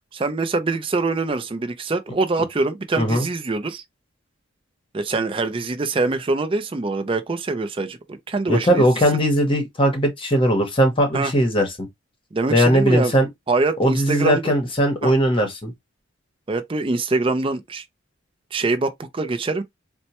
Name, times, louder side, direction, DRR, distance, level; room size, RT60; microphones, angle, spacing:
voice 1, 0.1-3.8 4.9-8.9 11.1-11.3 12.3-13.1 13.5-14.5 15.0-15.1 16.5-17.8 18.5-19.6, right 3 dB, 25° right, 0.4 m, -24 dB
voice 2, 8.5-11.9 12.5-13.3 13.8-15.7, equal, 25° left, 0.9 m, -19 dB
4.2 x 2.1 x 2.8 m
head